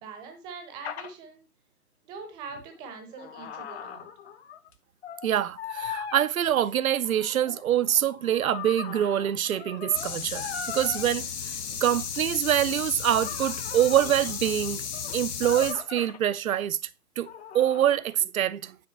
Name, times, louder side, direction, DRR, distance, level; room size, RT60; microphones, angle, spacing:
voice 1, 0.0-1.4 2.0-4.1, right 5 dB, 10° right, 0.8 m, -42 dB
sound 1, 0.8-1.1 2.7-4.7 5.0-5.3 5.6-6.2 7.0-11.1 11.9-12.1 13.1-16.2 17.2-18.1, left 7 dB, 40° left, 0.9 m, -40 dB
voice 2, 5.2-14.8 15.1-16.8 17.2-17.3 17.5-18.8, right 11 dB, 60° right, 0.6 m, -25 dB
sound 2, 9.9-15.7, left 7 dB, 70° left, 1.0 m, -34 dB
9.5 x 3.7 x 5.5 m
figure-of-eight pair, 135°, 47 cm